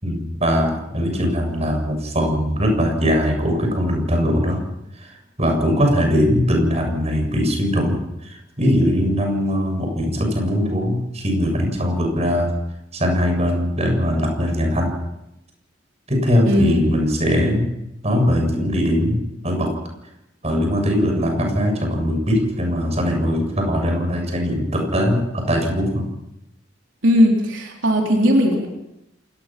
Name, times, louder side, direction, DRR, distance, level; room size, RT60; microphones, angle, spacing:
voice 1, 0.0-4.6 5.0-5.1 5.4-12.5 12.9-14.9 16.1-17.7 18.0-19.7 20.4-26.1, equal, 35° right, 3 dB, 7.3 m, -20 dB
voice 2, 16.5-16.8 27.0-28.7, equal, 80° right, 0 dB, 3.8 m, -17 dB
28.0 x 18.5 x 6.1 m, 0.86 s
head